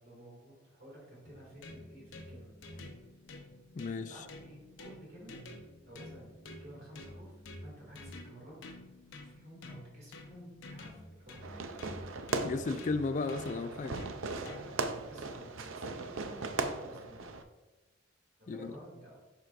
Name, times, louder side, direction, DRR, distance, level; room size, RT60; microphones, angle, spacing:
voice 1, 0.0-2.5 4.1-5.4 5.9-7.3 7.6-8.6 9.2-11.6 14.4-17.4 18.4-19.2, equal, 50° right, -4 dB, 2.3 m, -52 dB
sound 1, 1.2-14.9, left 1 dB, 60° left, 0.8 m, -50 dB
voice 2, 3.7-4.1 12.4-14.0 18.5-18.7, left 3 dB, 35° left, 9 dB, 0.3 m, -34 dB
Fireworks, 11.4-17.4, right 3 dB, 70° right, 0.5 m, -38 dB
11.0 x 4.6 x 2.5 m, 1.1 s
head